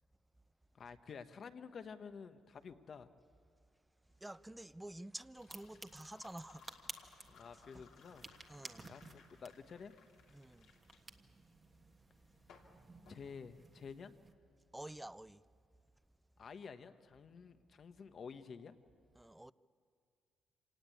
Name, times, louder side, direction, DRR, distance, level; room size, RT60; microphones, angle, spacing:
voice 1, 0.7-3.1 7.3-8.3 8.9-9.9 13.1-14.1 16.4-18.8, left 6 dB, 50° left, 1.2 m, -51 dB
sound 1, 4.1-14.0, left 6 dB, 85° left, 2.9 m, -64 dB
voice 2, 4.2-6.8 7.7-7.8 8.5-8.9 10.3-10.7 14.7-15.4 19.2-19.5, right 1 dB, 10° right, 0.5 m, -50 dB
sound 2, 5.4-14.3, right 3 dB, 25° right, 1.4 m, -56 dB
26.0 x 18.5 x 8.5 m
cardioid pair, 90°, 0 cm